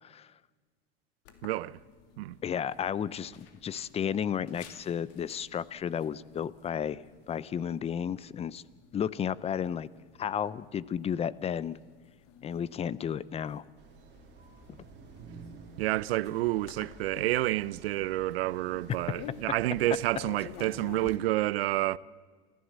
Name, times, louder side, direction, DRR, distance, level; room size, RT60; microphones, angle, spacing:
sound 1, 1.2-21.2, left 8 dB, 55° left, 2.5 m, -52 dB
voice 1, 1.4-1.8 2.2-2.4 15.8-22.0, right 17 dB, 80° right, 0.6 m, -29 dB
voice 2, 2.4-8.6 8.9-9.9 10.2-11.8 12.4-13.6 14.7-14.8, left 8 dB, 20° left, 0.5 m, -33 dB
sound 2, 13.8-20.8, right 4 dB, 35° right, 3.4 m, -52 dB
28.0 x 15.0 x 7.4 m
supercardioid pair, 120°, 30 cm